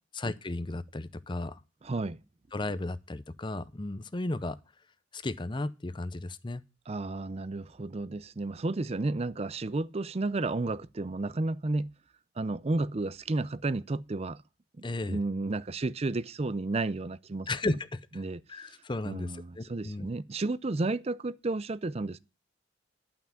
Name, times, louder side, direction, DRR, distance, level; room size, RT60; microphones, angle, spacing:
voice 1, 0.1-1.6 2.5-4.6 5.1-6.6 14.8-15.2 17.5-18.0 18.5-20.1, left 2 dB, 25° left, 0.6 m, -34 dB
voice 2, 1.8-2.2 6.9-11.9 12.4-14.4 15.1-17.5 18.2-18.4 19.0-22.2, right 2 dB, 30° right, 0.5 m, -32 dB
11.5 x 5.9 x 7.0 m
head